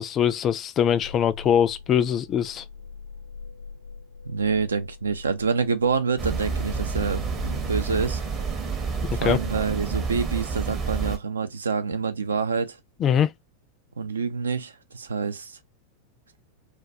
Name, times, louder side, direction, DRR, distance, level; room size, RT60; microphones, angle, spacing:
voice 1, 0.0-2.6 9.1-9.4 13.0-13.3, left 9 dB, 30° left, 0.3 m, -22 dB
sound 1, 1.0-8.0, left 5 dB, 80° left, 0.7 m, -43 dB
voice 2, 4.2-8.2 9.2-12.8 14.0-15.6, right 5 dB, 70° right, 0.4 m, -27 dB
sound 2, 6.2-11.2, right 5 dB, 25° right, 0.7 m, -29 dB
2.3 x 2.1 x 2.6 m
figure-of-eight pair, 90°, 0 cm